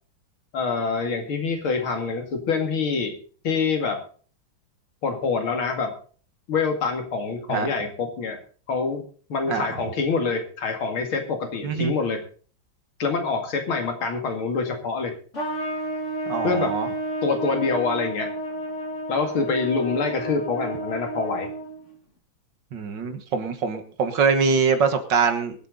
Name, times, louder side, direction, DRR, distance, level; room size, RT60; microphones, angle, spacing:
voice 1, 0.5-3.1 3.4-4.0 5.0-5.9 6.5-8.4 8.7-9.0 9.3-12.2 13.0-15.1 16.4-16.7 17.2-18.3 19.1-21.5, left 4 dB, 85° left, 4 dB, 3.1 m, -25 dB
Trumpet, 15.3-21.9, right 1 dB, 35° left, 2.5 m, -31 dB
voice 2, 16.3-16.9 22.7-25.6, right 5 dB, 60° right, 8 dB, 2.1 m, -23 dB
23.0 x 8.2 x 3.9 m, 0.42 s
omnidirectional pair, 2.2 m